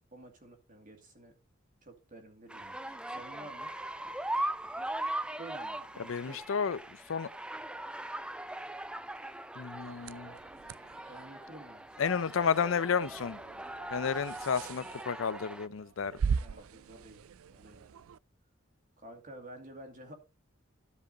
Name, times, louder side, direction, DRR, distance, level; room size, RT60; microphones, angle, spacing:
voice 1, 0.0-1.3 1.8-3.7 5.4-6.4 11.1-11.8 16.4-17.2 17.5-17.8 19.0-20.1, right 1 dB, 40° right, 2.3 m, -50 dB
sound 1, 2.5-15.7, right 1 dB, 5° right, 0.4 m, -40 dB
voice 2, 6.0-7.3 9.6-10.4 12.0-13.4 13.9-16.2, left 6 dB, 70° left, 0.5 m, -32 dB
sound 2, 9.9-18.2, right 6 dB, 85° right, 0.4 m, -40 dB
13.0 x 5.3 x 4.0 m
head